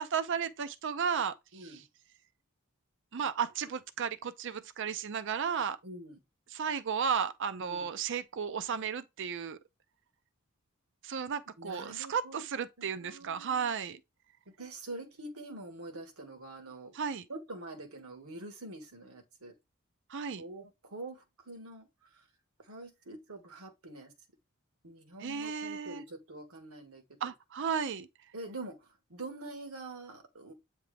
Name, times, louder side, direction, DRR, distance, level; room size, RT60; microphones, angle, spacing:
voice 1, 0.0-1.8 3.1-5.8 6.5-9.6 11.0-14.0 16.9-17.2 20.1-20.4 25.2-26.0 27.2-28.1, right 7 dB, 55° right, 0.5 m, -34 dB
voice 2, 1.5-1.8 5.8-6.2 7.6-7.9 11.6-12.4 12.8-13.7 14.5-16.9 17.3-19.5 20.4-21.9 22.7-24.1 24.8-27.3 28.3-28.8 29.1-30.5, right 2 dB, 80° right, 1.5 m, -45 dB
8.4 x 3.4 x 3.4 m
head